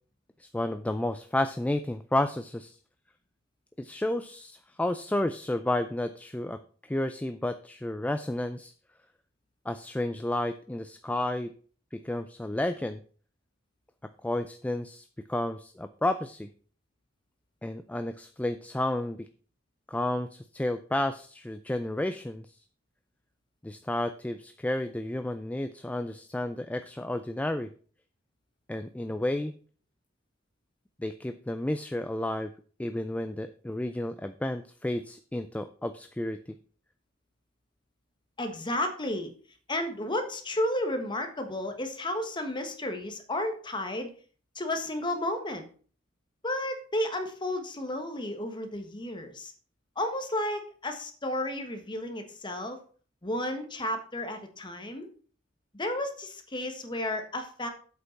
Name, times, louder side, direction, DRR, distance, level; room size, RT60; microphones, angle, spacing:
voice 1, 0.4-2.8 3.8-8.7 9.7-11.5 11.9-13.0 14.2-16.5 17.6-19.3 19.9-22.5 23.6-27.7 28.7-29.5 31.0-32.5 32.8-36.4, left 1 dB, 5° left, 9 dB, 0.3 m, -31 dB
voice 2, 38.4-39.3 39.7-44.1 44.5-45.6 46.4-49.5 50.0-52.8 53.2-55.1 55.7-57.7, left 1 dB, 25° left, 6 dB, 1.4 m, -32 dB
8.1 x 5.3 x 5.8 m, 0.42 s
head